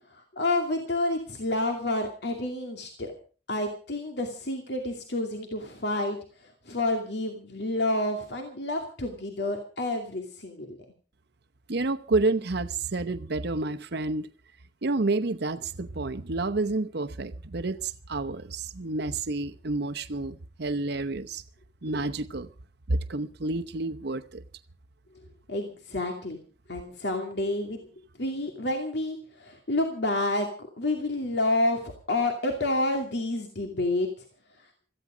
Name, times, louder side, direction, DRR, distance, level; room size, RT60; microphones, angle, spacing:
voice 1, 0.1-3.1 3.5-10.8 25.5-26.4 26.7-27.9 28.2-34.1, left 2 dB, 65° left, 2.5 m, -29 dB
voice 2, 11.7-14.3 14.8-21.4 21.8-22.5 22.9-24.4, right 2 dB, 65° right, 0.9 m, -29 dB
17.0 x 14.5 x 5.0 m
head